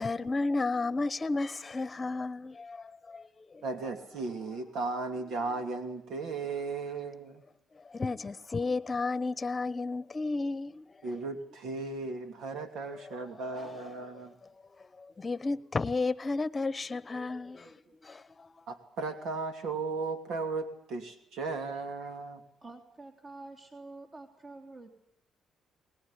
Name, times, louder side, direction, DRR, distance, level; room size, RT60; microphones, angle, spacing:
voice 1, 0.0-3.7 7.7-11.1 12.9-18.7, left 3 dB, 25° left, 1.0 m, -34 dB
voice 2, 3.6-7.4 11.0-14.4 18.7-22.4, right 3 dB, 80° right, 2.8 m, -36 dB
voice 3, 22.6-24.9, right 2 dB, 35° right, 3.4 m, -47 dB
22.0 x 20.0 x 9.9 m
cardioid pair, 115°, 0 cm